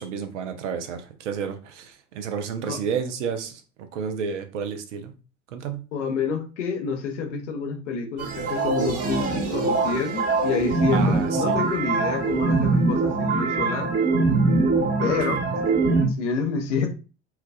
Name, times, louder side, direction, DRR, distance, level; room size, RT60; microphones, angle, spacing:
voice 1, 0.0-3.6 3.9-5.1 5.5-5.9 10.9-11.6 15.3-15.4, right 6 dB, 80° right, 7 dB, 0.7 m, -31 dB
voice 2, 5.9-13.9 15.0-15.4 16.2-16.9, left 5 dB, 80° left, 6 dB, 0.8 m, -28 dB
sound 1, 8.2-16.1, right 3 dB, 45° right, 1.5 m, -23 dB
4.5 x 2.4 x 2.2 m, 0.34 s
hypercardioid pair, 75°, 35 cm